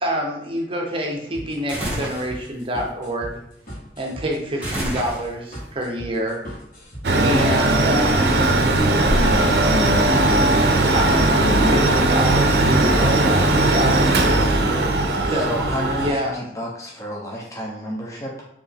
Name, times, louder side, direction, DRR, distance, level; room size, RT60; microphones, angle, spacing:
voice 1, 0.0-3.4 4.0-6.4 7.2-8.4 10.9-14.0 15.1-15.6 16.0-16.4, equal, 30° right, 0.7 m, -27 dB
sound 1, 1.3-16.1, equal, 50° left, 1.6 m, -37 dB
sound 2, 1.7-2.3 4.6-5.6, right 1 dB, 10° right, 1.2 m, -28 dB
Mechanical fan, 7.0-16.1, right 2 dB, 65° right, 0.5 m, -18 dB
voice 2, 8.4-10.5 11.3-11.9 14.4-14.8, left 3 dB, 85° left, 0.4 m, -30 dB
voice 3, 15.2-18.5, equal, 20° left, 0.7 m, -31 dB
4.4 x 2.8 x 3.5 m
head